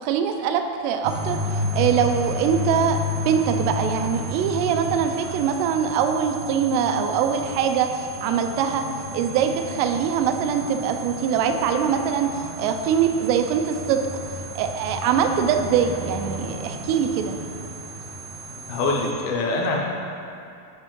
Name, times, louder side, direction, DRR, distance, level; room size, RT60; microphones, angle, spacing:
voice 1, 0.0-8.8 9.1-14.0 14.6-17.4, right 7 dB, 90° right, 6 dB, 2.6 m, -23 dB
sound 1, 1.0-19.1, left 1 dB, 60° right, 1.3 m, -32 dB
voice 2, 18.7-19.8, left 3 dB, 80° left, -1 dB, 2.4 m, -24 dB
10.0 x 4.4 x 3.7 m, 2.5 s
omnidirectional pair, 4.7 m